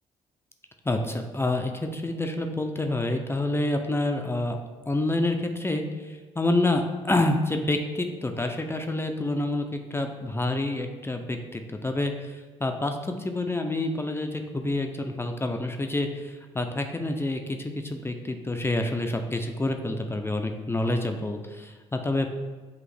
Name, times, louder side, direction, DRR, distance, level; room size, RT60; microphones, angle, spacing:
voice 1, 0.8-4.6 4.9-22.3, left 2 dB, 15° left, 4 dB, 0.5 m, -28 dB
6.1 x 2.5 x 3.3 m, 1.4 s
hypercardioid pair, 55°, 14 cm